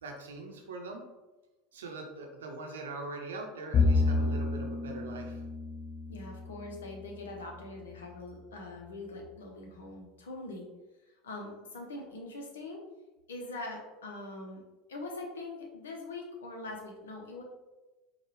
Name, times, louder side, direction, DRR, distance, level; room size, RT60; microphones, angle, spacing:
voice 1, 0.0-1.0 1.7-5.4, right 3 dB, 75° right, 2 dB, 0.7 m, -42 dB
Bowed string instrument, 3.7-7.2, left 3 dB, 35° left, 0.7 m, -30 dB
voice 2, 6.1-10.7 11.2-12.8 13.3-14.6 14.9-17.4, left 2 dB, 75° left, 1 dB, 0.7 m, -42 dB
4.6 x 2.3 x 3.1 m, 1.1 s
figure-of-eight pair, 80°, 0 cm